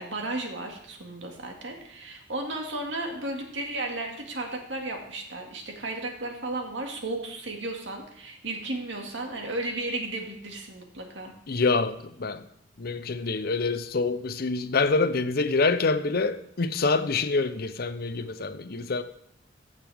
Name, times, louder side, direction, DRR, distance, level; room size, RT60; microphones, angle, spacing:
voice 1, 0.0-11.3, right 2 dB, 80° right, 2.1 m, -34 dB
voice 2, 11.5-12.4 12.8-19.0, left 3 dB, 55° left, 0.7 m, -26 dB
14.5 x 6.6 x 3.5 m
head